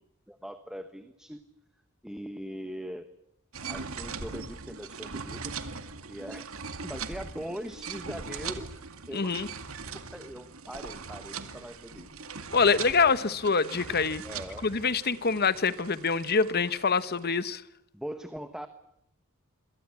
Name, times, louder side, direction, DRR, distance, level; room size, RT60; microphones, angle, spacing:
voice 1, 0.3-1.4 2.0-3.1 3.6-5.5 6.1-6.4 6.8-8.7 9.1-9.3 10.1-12.1 14.2-14.7 17.9-18.7, equal, 5° right, 1.3 m, -41 dB
sound 1, 3.5-17.5, right 5 dB, 75° right, 2.3 m, -41 dB
voice 2, 9.1-9.5 12.5-14.2 14.6-17.6, left 5 dB, 50° left, 1.2 m, -25 dB
28.5 x 23.0 x 8.5 m
head